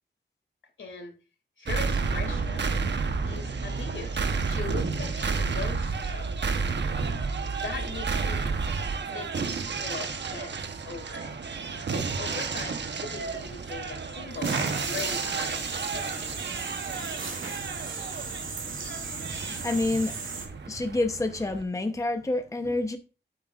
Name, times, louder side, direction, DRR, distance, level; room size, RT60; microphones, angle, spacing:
voice 1, 0.8-1.1 1.6-2.7 3.2-4.2 4.5-6.5 7.5-8.6 9.0-10.5 10.8-11.3 11.9-15.6 15.8-16.1, left 4 dB, 80° left, 2.5 m, -40 dB
sound 1, 1.7-21.6, right 4 dB, 65° right, 1.0 m, -31 dB
sound 2, 14.4-20.5, right 4 dB, 90° right, 2.1 m, -36 dB
voice 2, 19.4-20.1 20.7-23.0, left 2 dB, 15° left, 0.8 m, -28 dB
9.8 x 8.0 x 2.4 m
wide cardioid pair, 105°, 20 cm